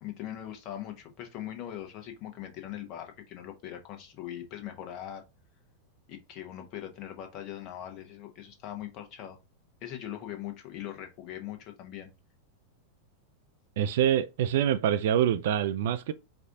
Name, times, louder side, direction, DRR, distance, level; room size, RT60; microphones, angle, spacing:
voice 1, 0.0-5.2 6.1-9.4 9.8-12.1, left 11 dB, 40° left, 0.9 m, -41 dB
voice 2, 13.8-16.1, right 10 dB, 55° right, 0.3 m, -25 dB
4.7 x 2.5 x 3.5 m
figure-of-eight pair, 90°, 0 cm